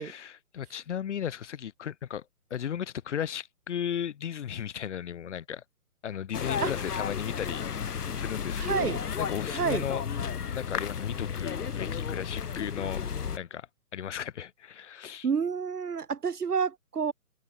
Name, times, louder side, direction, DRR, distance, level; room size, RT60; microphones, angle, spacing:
voice 1, 0.0-2.2 2.5-5.6 6.0-10.0 10.5-13.0 13.3-13.7 13.9-15.3, left 9 dB, 50° left, 2.0 m, -35 dB
sound 1, 6.3-13.4, left 7 dB, 80° left, 1.5 m, -33 dB
voice 2, 8.6-9.0 9.5-9.9 15.2-17.1, right 6 dB, 85° right, 1.8 m, -29 dB
hypercardioid pair, 150°, 45 cm